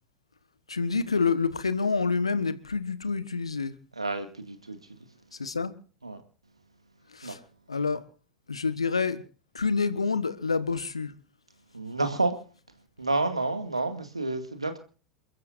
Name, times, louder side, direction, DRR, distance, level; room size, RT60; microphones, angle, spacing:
voice 1, 0.7-3.8 5.3-5.7 7.1-7.4 7.7-8.0 8.5-9.2 9.5-11.2, left 4 dB, 85° left, 1.4 m, -28 dB
voice 2, 4.0-4.8 6.0-6.2 7.2-7.4 11.7-12.4 13.0-14.8, right 2 dB, 85° right, 2.3 m, -29 dB
29.0 x 14.0 x 2.7 m
figure-of-eight pair, 80°, 3 cm